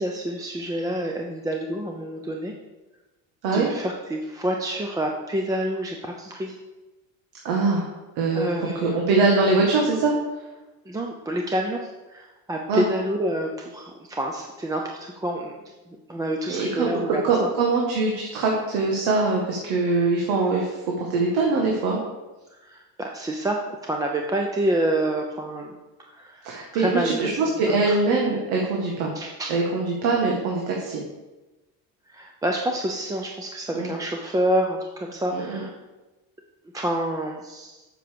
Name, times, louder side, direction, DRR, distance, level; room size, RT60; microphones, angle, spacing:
voice 1, 0.0-2.5 3.5-6.6 8.3-9.0 10.9-15.5 16.1-17.3 22.6-25.7 26.1-26.5 26.7-28.0 29.1-29.5 32.1-35.7 36.7-37.8, right 1 dB, 10° right, 1 dB, 0.6 m, -28 dB
voice 2, 7.4-7.9 8.2-8.5 8.8-10.1 12.7-12.9 16.5-22.0 26.4-29.1 29.5-31.0 33.7-33.9 35.3-35.7, right 3 dB, 90° right, -1 dB, 2.0 m, -23 dB
8.0 x 6.0 x 6.9 m, 1.1 s
cardioid pair, 165°, 35 cm